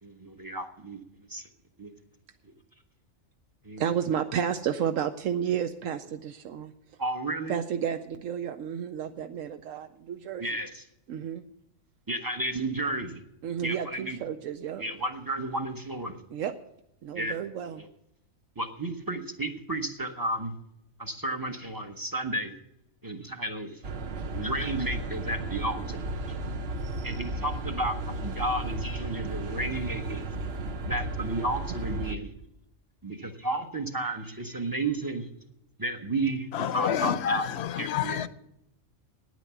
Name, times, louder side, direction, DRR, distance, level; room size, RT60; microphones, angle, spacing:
voice 1, 0.0-1.0 1.3-1.5 1.8-1.9 2.4-2.5 3.6-3.8 7.0-7.5 10.4-10.8 12.1-13.2 13.6-14.2 14.8-16.2 17.1-17.4 17.8-17.9 18.6-20.5 21.0-22.5 23.0-23.8 24.3-26.4 27.0-30.3 30.8-32.3 33.0-35.3 35.8-37.4 37.8-38.2, right 2 dB, 20° right, 0.9 m, -32 dB
voice 2, 3.8-6.7 7.5-10.4 11.1-11.4 13.4-14.8 16.3-16.5 17.0-17.8, right 8 dB, 80° right, 1.0 m, -31 dB
sound 1, 23.8-32.2, right 2 dB, 55° right, 1.0 m, -34 dB
voice 3, 36.5-38.3, left 9 dB, 60° left, 0.9 m, -29 dB
9.6 x 9.2 x 8.1 m
omnidirectional pair, 1.3 m